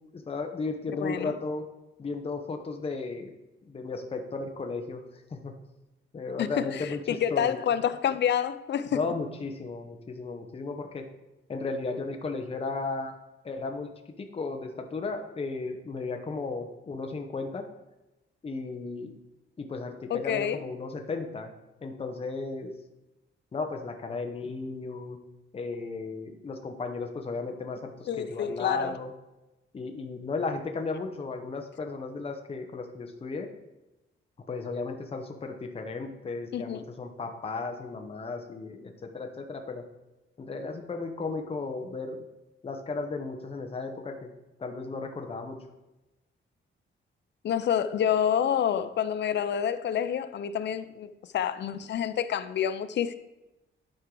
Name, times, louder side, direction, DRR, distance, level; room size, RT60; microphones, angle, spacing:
voice 1, 0.0-1.6 2.0-3.3 3.7-5.5 6.1-7.6 8.9-11.0 11.5-13.1 13.4-13.9 14.2-17.6 18.4-19.2 19.6-21.5 21.8-22.7 23.5-25.2 25.5-29.1 29.7-33.5 34.5-39.8 40.4-42.2 42.6-44.3 44.6-45.6, left 3 dB, 30° left, 0.8 m, -35 dB
voice 2, 1.0-1.3 6.4-9.0 20.1-20.6 28.1-28.9 36.5-36.8 47.4-53.1, left 9 dB, 55° left, 0.5 m, -28 dB
11.5 x 4.7 x 3.8 m
wide cardioid pair, 165°, 21 cm